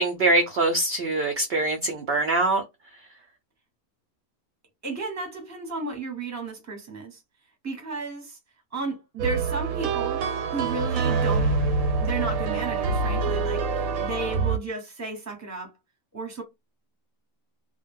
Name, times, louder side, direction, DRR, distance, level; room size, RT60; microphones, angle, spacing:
voice 1, 0.0-2.6, right 2 dB, 65° right, 0.6 m, -23 dB
voice 2, 4.8-7.2 7.6-8.4 8.7-10.2 10.5-11.6 12.0-15.7 16.1-16.4, right 3 dB, 15° right, 0.7 m, -33 dB
sound 1, 9.2-14.6, right 4 dB, 85° right, 1.0 m, -25 dB
2.2 x 2.0 x 3.4 m
omnidirectional pair, 1.4 m